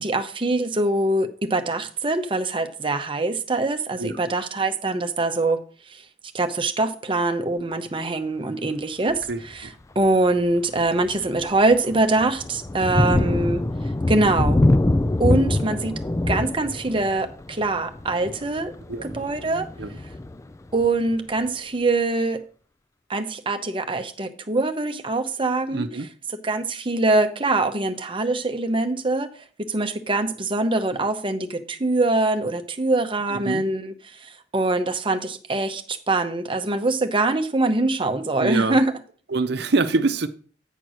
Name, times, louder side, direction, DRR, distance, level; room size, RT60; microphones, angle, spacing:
voice 1, 0.0-5.6 5.9-6.0 6.3-9.7 9.9-13.6 14.1-14.6 15.2-16.0 16.3-18.7 19.0-19.7 20.7-22.4 23.1-25.9 26.4-29.3 29.6-38.9, right 2 dB, 30° right, 0.8 m, -23 dB
Thunder, 9.1-9.4 10.0-10.1 10.6-21.1, left 2 dB, 15° left, 0.4 m, -25 dB
voice 2, 9.3-9.7 18.9-19.2 19.8-19.9 25.7-26.1 33.3-33.6 38.4-38.8 39.3-40.3, right 3 dB, 65° right, 0.7 m, -25 dB
9.1 x 4.5 x 6.3 m
head